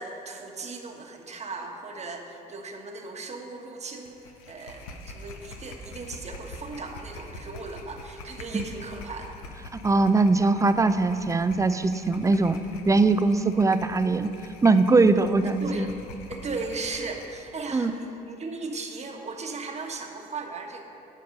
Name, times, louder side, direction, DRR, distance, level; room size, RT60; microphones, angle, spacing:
voice 1, 0.0-9.3 15.4-15.9 16.3-20.8, right 3 dB, 35° right, 3 dB, 1.3 m, -37 dB
sound 1, 4.0-17.4, left 2 dB, 90° left, 0.8 m, -44 dB
voice 2, 9.7-12.6 12.9-14.3 14.6-15.9 17.7-17.9, right 3 dB, 15° right, 11 dB, 0.4 m, -21 dB
12.0 x 5.3 x 5.3 m, 3.0 s
supercardioid pair, 65°, 19 cm